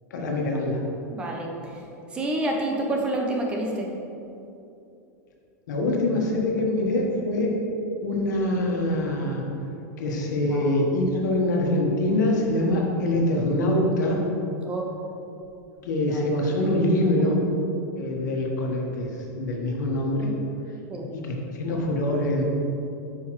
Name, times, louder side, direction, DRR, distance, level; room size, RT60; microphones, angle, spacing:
voice 1, 0.1-0.8 5.7-7.6 8.0-9.4 10.0-14.2 15.8-17.4 17.9-19.1 19.3-20.3 21.1-22.4, left 1 dB, 90° left, -1 dB, 1.4 m, -24 dB
voice 2, 1.1-1.8 2.1-4.0 10.5-10.8 14.6-14.9 16.1-16.2 20.9-21.1, right 1 dB, 10° right, 0 dB, 0.5 m, -28 dB
7.6 x 5.6 x 3.1 m, 2.8 s
supercardioid pair, 175°, 9 cm